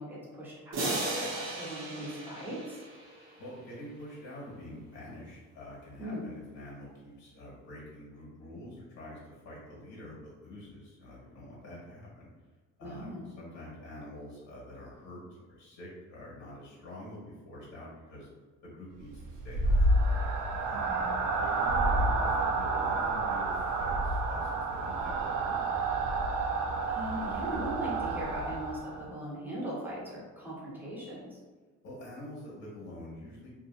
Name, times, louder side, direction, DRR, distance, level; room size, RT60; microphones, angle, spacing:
voice 1, 0.0-2.8 6.0-6.3 12.8-13.3 20.8-21.1 26.9-31.4, right 1 dB, 5° right, -7 dB, 0.8 m, -39 dB
sound 1, 0.7-3.4, right 2 dB, 40° right, 0.7 m, -36 dB
voice 2, 3.4-12.3 12.8-18.3 18.6-19.8 20.6-20.9 21.4-25.6 31.8-33.5, left 1 dB, 65° left, -5 dB, 1.3 m, -46 dB
sound 2, 19.1-29.1, right 2 dB, 80° right, 0.5 m, -29 dB
2.8 x 2.5 x 2.5 m, 1.4 s
cardioid pair, 140°, 31 cm